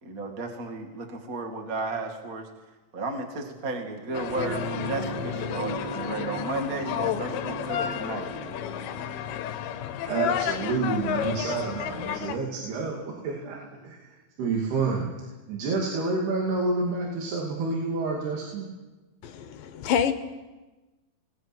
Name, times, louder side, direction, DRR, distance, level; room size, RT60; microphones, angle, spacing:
voice 1, 0.0-2.5 2.9-8.3, right 3 dB, 30° right, 3 dB, 1.9 m, -34 dB
sound 1, 4.0-12.7 13.9-14.0, right 2 dB, 50° right, 2.8 m, -38 dB
sound 2, 4.1-12.4, left 11 dB, 85° left, 2.9 m, -32 dB
voice 2, 10.1-15.1 15.5-18.7, right 3 dB, 90° right, -1 dB, 4.7 m, -29 dB
voice 3, 19.2-20.1, left 8 dB, 70° left, 9 dB, 2.6 m, -26 dB
27.5 x 20.5 x 6.2 m, 1.2 s
omnidirectional pair, 4.4 m